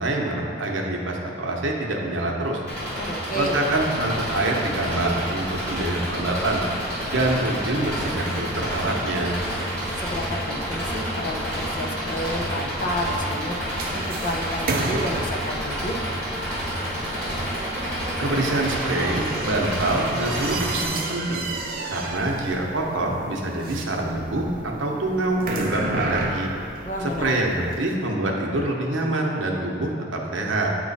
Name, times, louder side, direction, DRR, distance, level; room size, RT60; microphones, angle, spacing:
voice 1, 0.0-2.6 3.3-6.6 7.1-9.4 17.9-21.4 21.9-26.5 27.0-30.7, right 2 dB, 80° right, 0 dB, 0.8 m, -25 dB
Engine, 2.7-20.9, equal, 5° left, 1.4 m, -29 dB
voice 2, 3.0-3.6 10.0-13.5 13.9-16.0 26.8-27.3, equal, 40° left, 1 dB, 0.6 m, -30 dB
sound 1, 12.6-27.9, right 2 dB, 45° right, 0.5 m, -33 dB
9.0 x 3.0 x 4.1 m, 2.5 s
head